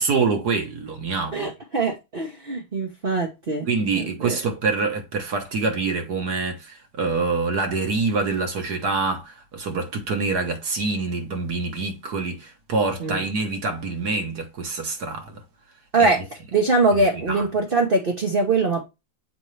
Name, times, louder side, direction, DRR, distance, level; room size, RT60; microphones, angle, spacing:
voice 1, 0.0-1.5 3.7-15.4 16.0-16.1 17.1-17.5, right 4 dB, 55° right, 1.6 m, -26 dB
voice 2, 1.3-3.6 3.9-4.4 13.0-13.2 15.9-16.2 16.5-18.8, right 3 dB, 35° right, 0.9 m, -22 dB
6.9 x 4.4 x 3.2 m
omnidirectional pair, 2.1 m